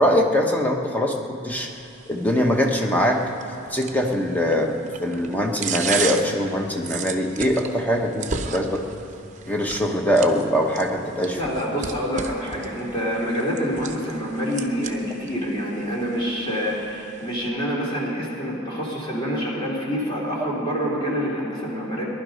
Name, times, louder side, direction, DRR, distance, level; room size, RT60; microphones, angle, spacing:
voice 1, 0.0-1.7 2.1-3.2 3.7-8.8 9.4-11.4, equal, 10° left, 1 dB, 1.1 m, -22 dB
sound 1, 1.5-17.5, right 6 dB, 35° right, 0.7 m, -36 dB
voice 2, 11.3-22.0, equal, 25° left, -5 dB, 2.7 m, -27 dB
19.0 x 11.5 x 5.3 m, 2.7 s
head